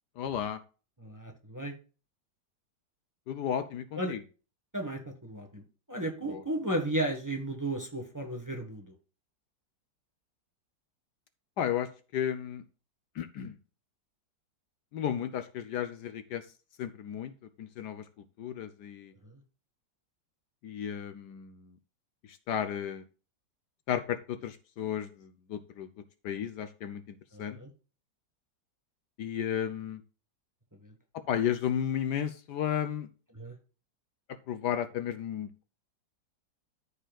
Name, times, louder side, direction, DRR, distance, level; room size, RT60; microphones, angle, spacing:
voice 1, 0.2-0.6 3.3-4.2 6.3-6.4 11.6-12.6 13.2-13.5 14.9-16.4 16.8-17.3 17.6-18.0 18.4-19.1 20.6-21.7 22.3-23.0 23.9-25.9 26.2-27.6 29.2-30.0 31.3-33.1 34.5-35.6, left 9 dB, 70° left, 11 dB, 1.3 m, -33 dB
voice 2, 1.0-1.7 4.0-4.2 4.7-5.6 5.9-8.9 19.2-19.4 27.3-27.7 30.8-30.9 33.3-33.5, right 1 dB, 10° right, 3 dB, 1.4 m, -34 dB
13.5 x 5.6 x 2.4 m, 0.34 s
omnidirectional pair, 2.0 m